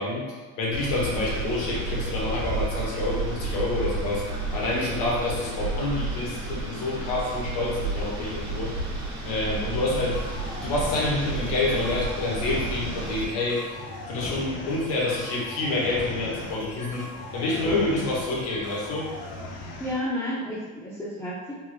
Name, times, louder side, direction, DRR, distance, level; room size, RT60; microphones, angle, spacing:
voice 1, 0.0-4.3 4.5-8.7 9.2-10.2 10.5-13.7 14.1-17.1 17.3-19.1, left 2 dB, 75° left, -4 dB, 1.2 m, -28 dB
sound 1, 0.7-13.3, right 3 dB, 45° right, 1.2 m, -31 dB
voice 2, 9.5-10.1 17.6-18.1 19.8-21.5, equal, 5° left, -9 dB, 0.5 m, -33 dB
sound 2, 10.1-19.9, left 2 dB, 45° left, 0.6 m, -38 dB
3.5 x 2.0 x 3.1 m, 1.3 s
cardioid pair, 135°, 35 cm